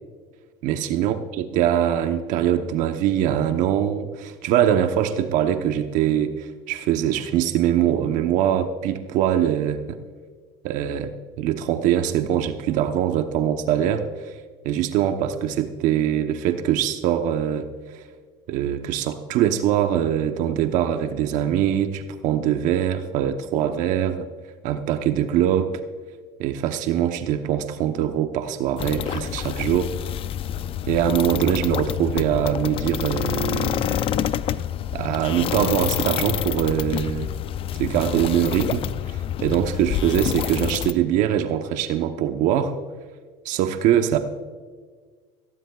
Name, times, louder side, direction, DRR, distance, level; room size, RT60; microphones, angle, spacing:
voice 1, 0.6-10.0 10.6-11.1 11.4-14.4 14.6-18.0 18.5-24.3 24.6-25.8 26.4-29.9 30.9-34.3 34.9-37.3 37.8-42.7 43.4-44.2, right 10 dB, 65° right, 7 dB, 0.9 m, -23 dB
sound 1, 28.8-40.9, left 10 dB, 40° left, 0.5 m, -27 dB
18.5 x 16.0 x 2.4 m, 1.5 s
supercardioid pair, 115°, 14 cm